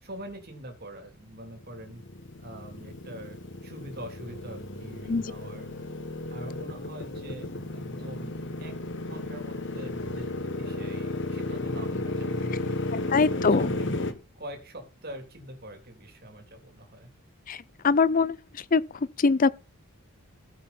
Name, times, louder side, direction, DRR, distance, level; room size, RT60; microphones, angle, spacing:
voice 1, 0.0-2.0 2.3-5.7 6.3-7.5 7.7-13.0 13.6-13.9 14.3-17.1, right 1 dB, 45° right, 3.1 m, -43 dB
Motorcycle, 1.5-14.1, left 2 dB, 55° left, 1.5 m, -33 dB
voice 2, 13.1-13.7 17.5-17.6 17.8-18.4 18.7-18.8 19.2-19.5, left 4 dB, 40° left, 0.5 m, -21 dB
15.0 x 7.5 x 4.3 m
head